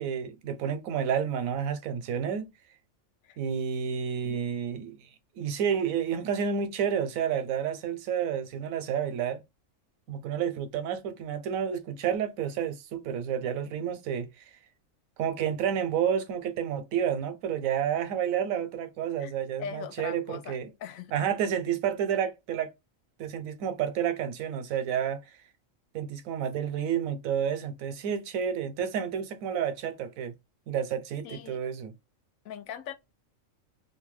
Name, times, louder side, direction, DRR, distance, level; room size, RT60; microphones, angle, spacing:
voice 1, 0.0-2.5 3.4-5.0 5.4-9.4 10.1-14.3 15.2-20.7 21.1-22.7 23.2-25.2 25.9-30.3 30.7-31.9, right 8 dB, 85° right, 1.0 m, -30 dB
voice 2, 19.6-21.1 31.2-31.6 32.4-32.9, left 8 dB, 80° left, 1.0 m, -40 dB
2.8 x 2.2 x 3.1 m
omnidirectional pair, 1.4 m